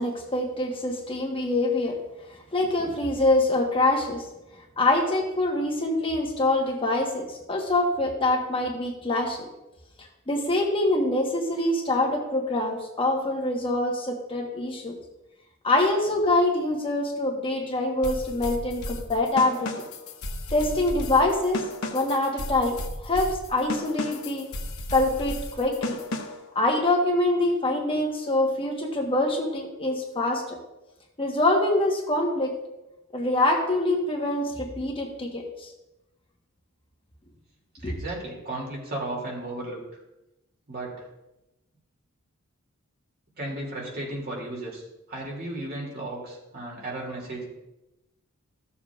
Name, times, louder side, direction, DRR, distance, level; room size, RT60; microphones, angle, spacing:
voice 1, 0.0-2.0 2.5-4.2 4.8-9.5 10.0-15.0 15.6-19.7 20.5-21.6 21.9-22.8 23.0-24.5 24.9-26.0 26.5-30.6 31.2-32.6 33.1-35.7 37.8-37.9, left 2 dB, 25° left, 0 dB, 1.1 m, -25 dB
sound 1, 18.0-26.5, left 1 dB, 80° left, 0.9 m, -34 dB
voice 2, 37.8-39.8 40.7-41.1 43.4-47.5, right 1 dB, 45° right, -2 dB, 2.5 m, -34 dB
15.0 x 6.9 x 2.4 m, 0.96 s
head